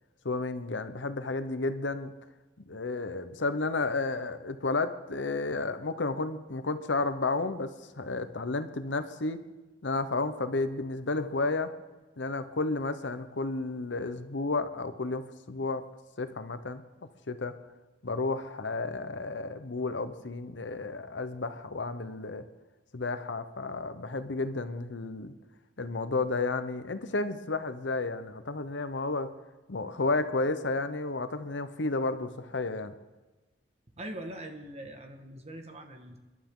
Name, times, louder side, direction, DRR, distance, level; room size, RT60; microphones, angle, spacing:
voice 1, 0.2-2.1 2.7-9.4 9.8-11.7 12.2-15.9 16.2-16.8 17.3-17.6 18.0-22.4 22.9-25.3 25.8-29.3 29.7-32.9, left 3 dB, 70° left, 11 dB, 0.9 m, -32 dB
voice 2, 34.0-36.2, right 1 dB, 35° right, 4 dB, 1.7 m, -42 dB
29.5 x 11.5 x 3.8 m, 1.2 s
head